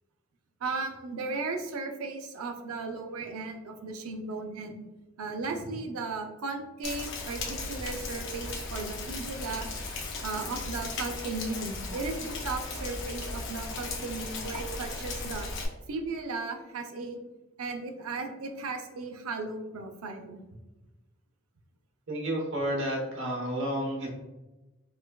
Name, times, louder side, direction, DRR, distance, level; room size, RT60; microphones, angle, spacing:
voice 1, 0.6-4.8 5.2-9.7 10.2-15.5 15.9-17.2 17.6-20.4, right 3 dB, 90° right, 4 dB, 0.5 m, -36 dB
Rain, 6.8-15.7, left 3 dB, 60° left, 0.6 m, -36 dB
voice 2, 22.1-24.1, right 1 dB, 60° right, -1 dB, 1.0 m, -31 dB
4.7 x 2.3 x 2.2 m, 1.1 s
head